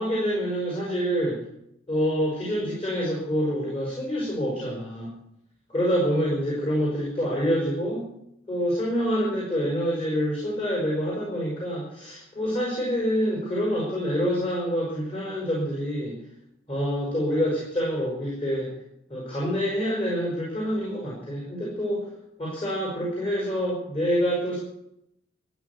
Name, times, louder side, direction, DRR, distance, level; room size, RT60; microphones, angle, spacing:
voice 1, 0.0-1.4 1.9-5.1 5.7-8.0 8.5-16.1 16.7-18.7 19.1-22.0 22.4-24.6, equal, 25° left, -3 dB, 5.2 m, -26 dB
13.5 x 8.5 x 9.7 m, 0.79 s
head